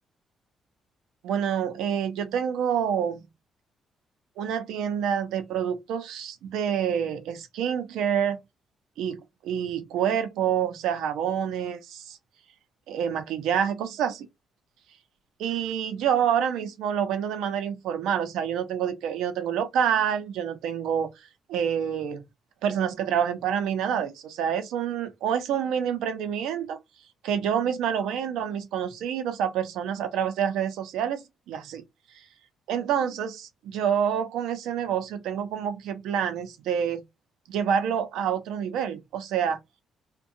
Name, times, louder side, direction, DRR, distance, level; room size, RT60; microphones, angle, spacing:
voice 1, 1.2-3.2 4.4-8.4 9.0-12.2 12.9-14.3 15.4-21.1 21.5-22.2 22.6-26.8 27.2-31.8 32.1-32.2 32.7-37.0 37.5-39.6, right 8 dB, 90° right, 0.5 m, -27 dB
2.6 x 2.2 x 2.6 m
cardioid pair, 90°, 0 cm